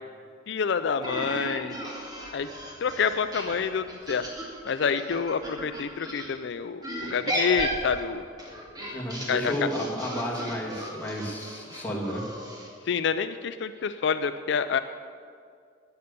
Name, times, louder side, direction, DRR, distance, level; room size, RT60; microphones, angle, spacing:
voice 1, 0.5-1.8 2.3-2.5 2.8-4.3 4.6-8.3 9.3-9.5 12.9-14.8, left 6 dB, 65° left, 10 dB, 0.4 m, -27 dB
sound 1, 1.0-6.3 6.8-12.7, equal, 20° right, 2.5 m, -35 dB
voice 2, 8.9-12.2, equal, 10° left, -4 dB, 2.5 m, -32 dB
19.0 x 6.8 x 6.8 m, 2.2 s
head